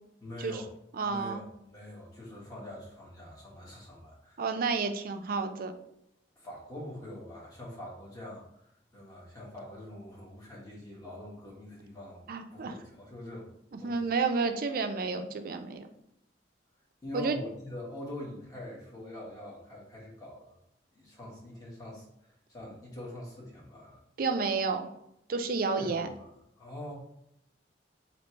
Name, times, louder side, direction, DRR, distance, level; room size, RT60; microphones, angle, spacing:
voice 1, 0.2-0.7 1.0-4.4 6.4-13.5 13.8-14.0 17.0-20.6 20.9-24.0 25.7-26.3 26.6-26.9, left 1 dB, 20° left, -4 dB, 1.2 m, -44 dB
voice 2, 1.0-1.4 4.4-5.7 12.3-12.8 13.8-15.9 17.1-17.4 24.2-24.9 25.3-26.1, right 4 dB, 50° right, 7 dB, 0.4 m, -30 dB
3.1 x 2.9 x 4.3 m, 0.80 s
head